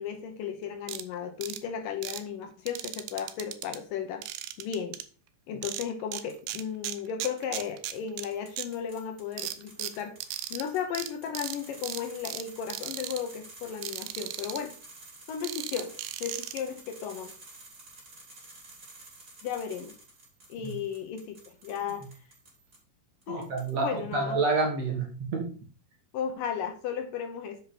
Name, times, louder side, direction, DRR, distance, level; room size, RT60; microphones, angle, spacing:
voice 1, 0.0-4.2 4.6-5.0 5.5-10.1 10.5-14.7 15.3-15.9 16.2-17.3 19.4-19.9 20.5-22.0 23.3-23.5 23.8-24.4 26.1-27.6, left 8 dB, 70° left, 5 dB, 2.3 m, -35 dB
sound 1, 0.9-1.0 1.4-1.6 2.0-2.2 2.7-3.8 4.2-5.0 5.6-6.2 6.5-8.3 8.6-8.7 9.4-10.6 10.9-11.1 11.3-11.6 11.8-12.4 12.7-13.2 13.8-14.6 15.4-16.6, right 13 dB, 85° right, 2.6 m, -36 dB
sound 2, 6.3-6.7 7.4-22.8 23.2-24.0, right 2 dB, 25° right, 3.2 m, -51 dB
voice 2, 23.3-25.5, right 3 dB, 50° right, 0 dB, 2.3 m, -29 dB
6.7 x 5.3 x 5.8 m, 0.39 s
omnidirectional pair, 4.4 m